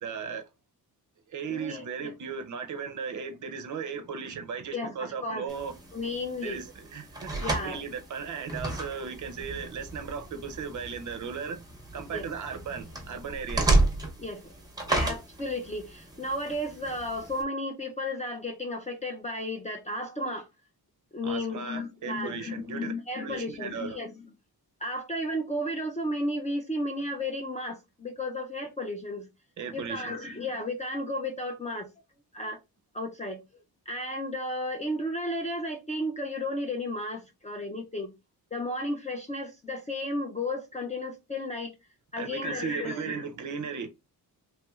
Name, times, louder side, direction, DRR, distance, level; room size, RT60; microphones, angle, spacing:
voice 1, 0.0-0.4 1.3-5.7 6.4-7.3 7.6-11.6 11.9-13.8 21.2-22.9 23.2-24.0 29.6-30.2 42.2-43.9, right 6 dB, 50° right, 0.5 m, -36 dB
voice 2, 1.5-2.1 4.7-5.5 5.9-6.6 7.4-7.8 12.1-12.3 14.2-14.5 14.9-20.5 21.1-24.1 24.8-29.3 29.7-31.9 32.3-32.6 32.9-33.4 33.9-38.1 38.5-41.7 42.1-43.3, left 1 dB, 20° left, 0.3 m, -33 dB
sound 1, 5.5-17.4, right 2 dB, 10° right, 0.7 m, -32 dB
3.0 x 3.0 x 2.3 m
wide cardioid pair, 155°, 38 cm